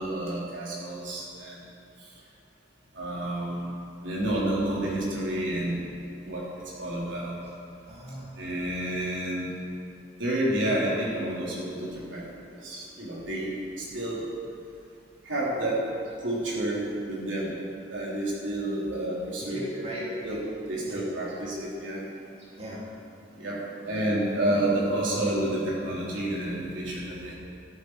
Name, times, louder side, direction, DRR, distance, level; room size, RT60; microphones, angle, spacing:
voice 1, 0.0-1.6 2.9-3.7 4.0-5.8 6.2-6.4 6.8-7.3 8.4-9.5 10.2-12.4 12.6-14.2 15.2-15.8 16.2-17.5 17.9-20.4 20.7-22.0 23.4-27.3, right 1 dB, 85° right, -6 dB, 3.7 m, -29 dB
voice 2, 7.8-8.4 19.4-20.4 20.8-21.0 22.2-22.9, equal, 35° right, -6 dB, 2.9 m, -40 dB
14.0 x 13.0 x 4.9 m, 2.5 s
head